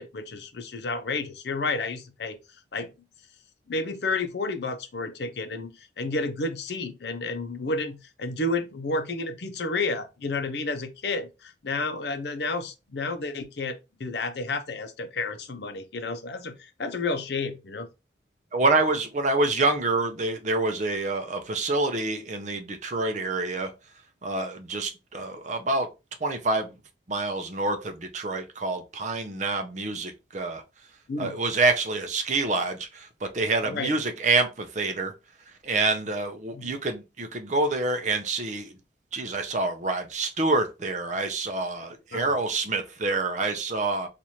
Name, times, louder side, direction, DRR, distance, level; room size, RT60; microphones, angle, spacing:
voice 1, 0.0-2.4 2.7-2.9 3.7-17.9 31.1-31.4 33.7-33.9 36.5-36.7 42.1-42.3, left 3 dB, 65° left, 0.6 m, -31 dB
voice 2, 18.5-23.7 24.2-25.9 26.2-26.7 27.1-30.6 31.2-35.1 35.6-38.7 39.1-44.1, right 3 dB, 40° right, 0.6 m, -27 dB
3.0 x 2.5 x 4.2 m
head